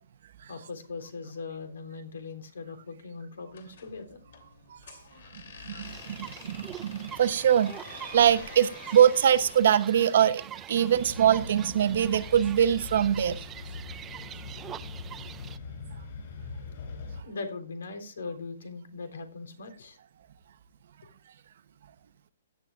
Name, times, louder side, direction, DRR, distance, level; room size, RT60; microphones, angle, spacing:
voice 1, 0.5-4.2 17.2-20.0, left 4 dB, 90° left, 3.6 m, -40 dB
sound 1, 3.5-9.7, left 6 dB, 60° left, 2.9 m, -47 dB
voice 2, 5.3-13.5, right 9 dB, 55° right, 0.9 m, -23 dB
sound 2, 5.8-15.6, right 10 dB, 15° right, 0.4 m, -44 dB
sound 3, 10.9-17.2, left 4 dB, 40° left, 7.0 m, -42 dB
16.5 x 10.5 x 2.4 m
hypercardioid pair, 170°, 0 cm